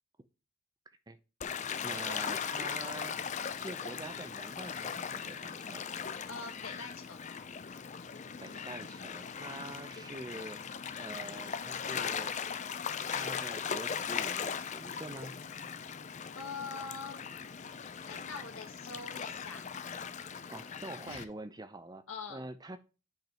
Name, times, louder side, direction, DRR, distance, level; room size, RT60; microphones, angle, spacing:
Gull seagull / Waves surf, 1.4-21.2, left 7 dB, 35° left, 0.4 m, -39 dB
voice 1, 1.8-3.2 3.6-5.8 8.4-10.6 11.0-12.4 13.1-15.4 20.5-22.0 22.3-22.8, right 2 dB, 20° right, 11 dB, 0.5 m, -45 dB
voice 2, 6.3-7.2 16.3-17.2 18.0-19.7 21.1-21.3 22.1-22.4, left 4 dB, 80° left, 3 dB, 1.9 m, -43 dB
9.1 x 5.2 x 2.9 m, 0.31 s
head